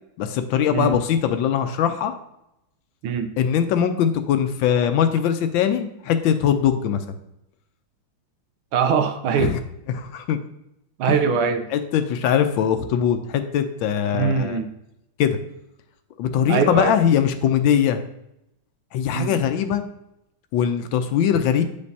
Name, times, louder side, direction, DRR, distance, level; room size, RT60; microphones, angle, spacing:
voice 1, 0.2-2.1 3.4-7.0 9.4-9.6 9.9-10.4 11.0-11.2 11.7-14.6 15.2-15.4 16.2-18.0 18.9-19.8 20.5-21.6, left 8 dB, 75° left, 8 dB, 1.3 m, -21 dB
voice 2, 8.7-9.5 11.0-11.6 14.1-14.7 16.5-16.9 19.1-19.3, right 6 dB, 85° right, 7 dB, 1.6 m, -22 dB
8.6 x 5.2 x 2.7 m, 0.85 s
omnidirectional pair, 2.2 m